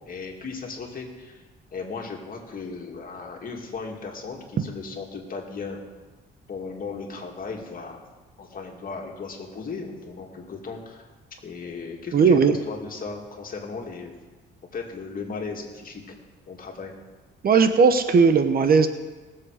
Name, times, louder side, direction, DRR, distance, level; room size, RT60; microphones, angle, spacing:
voice 1, 0.0-1.4 1.7-5.8 6.5-8.0 8.4-11.1 11.4-14.2 14.7-16.1 16.5-16.9, left 4 dB, 45° left, 1 dB, 2.5 m, -36 dB
voice 2, 12.1-12.6 17.4-18.9, right 5 dB, 50° right, 9 dB, 1.0 m, -17 dB
20.0 x 7.6 x 5.0 m, 1.3 s
cardioid pair, 90°, 20 cm